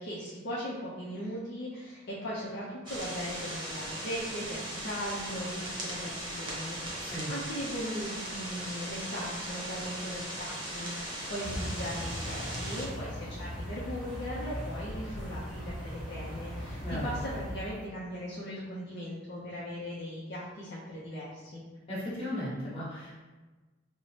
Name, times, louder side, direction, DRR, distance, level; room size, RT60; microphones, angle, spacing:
voice 1, 0.0-21.6, equal, 60° left, -7 dB, 0.6 m, -38 dB
sound 1, 2.9-12.9, right 1 dB, 25° right, 0.8 m, -38 dB
voice 2, 7.0-7.3 16.8-17.1 21.9-23.2, left 1 dB, 30° left, -9 dB, 1.5 m, -36 dB
sound 2, 11.4-17.8, equal, ahead, 1.4 m, -39 dB
4.5 x 2.1 x 2.8 m, 1.2 s
head